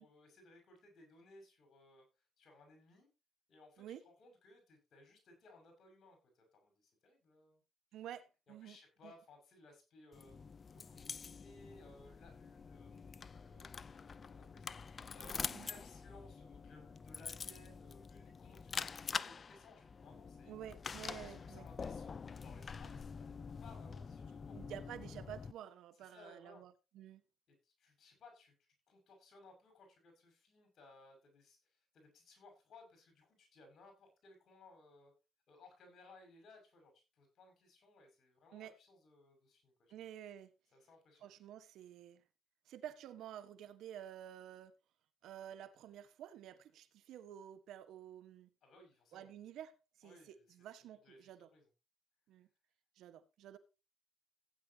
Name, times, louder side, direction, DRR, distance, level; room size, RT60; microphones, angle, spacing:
voice 1, 0.0-2.0 2.4-3.1 3.5-7.6 8.5-10.4 10.7-20.6 21.0-23.3 23.6-25.2 26.0-26.7 27.6-28.5 28.9-31.6 31.9-35.1 35.5-39.9 40.7-41.3 48.6-49.3 50.0-50.5 51.0-51.7, left 2 dB, 60° left, 6.6 m, -62 dB
voice 2, 7.9-8.8 9.0-9.1 15.5-15.7 20.5-21.7 24.5-27.2 38.5-38.7 39.9-40.5 41.2-42.2 42.7-44.7 45.2-48.5 49.1-51.5 52.3-52.5 53.0-53.6, right 10 dB, 80° right, 1.5 m, -51 dB
sound 1, 10.1-25.5, left 5 dB, 40° left, 0.6 m, -46 dB
16.0 x 9.5 x 2.9 m
cardioid pair, 90°, 0 cm